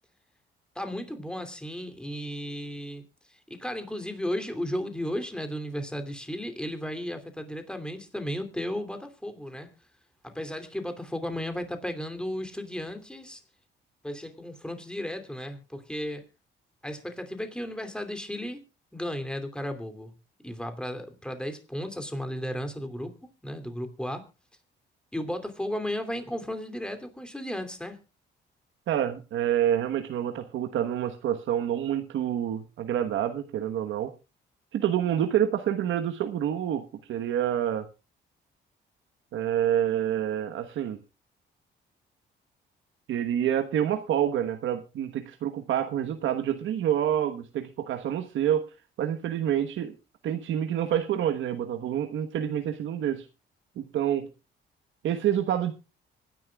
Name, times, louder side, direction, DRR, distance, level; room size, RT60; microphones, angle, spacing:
voice 1, 0.7-3.0 3.5-9.7 10.2-13.4 14.0-16.2 16.8-18.7 18.9-20.1 20.4-24.3 25.1-28.0, equal, 5° left, 2.8 m, -34 dB
voice 2, 28.9-34.1 34.7-36.8 37.1-37.9 39.3-41.0 43.1-48.6 49.0-49.9 50.2-53.3 53.8-54.3 55.0-55.7, right 10 dB, 80° right, 1.2 m, -27 dB
25.0 x 10.5 x 2.3 m
cardioid pair, 90°, 20 cm